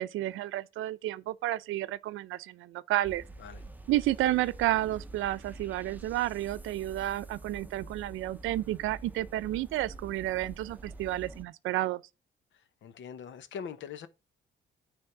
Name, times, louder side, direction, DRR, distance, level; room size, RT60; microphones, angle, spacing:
voice 1, 0.0-3.2 3.9-12.0, right 15 dB, 85° right, 0.6 m, -31 dB
sound 1, 3.0-11.4, right 2 dB, 10° right, 0.8 m, -47 dB
voice 2, 12.8-14.1, left 7 dB, 70° left, 1.0 m, -42 dB
9.7 x 3.6 x 5.8 m
cardioid pair, 90°, 20 cm